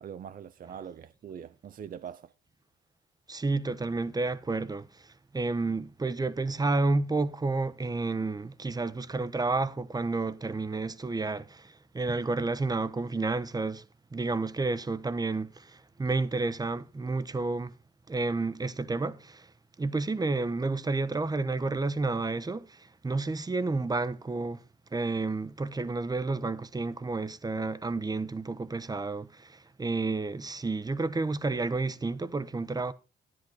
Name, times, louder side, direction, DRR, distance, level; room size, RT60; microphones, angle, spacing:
voice 1, 0.0-2.3, right 8 dB, 45° right, 0.6 m, -43 dB
voice 2, 3.3-13.8 14.1-17.7 18.1-19.5 19.8-24.6 24.9-32.9, right 3 dB, 20° right, 0.9 m, -30 dB
10.5 x 10.0 x 3.9 m
cardioid pair, 90°, 20 cm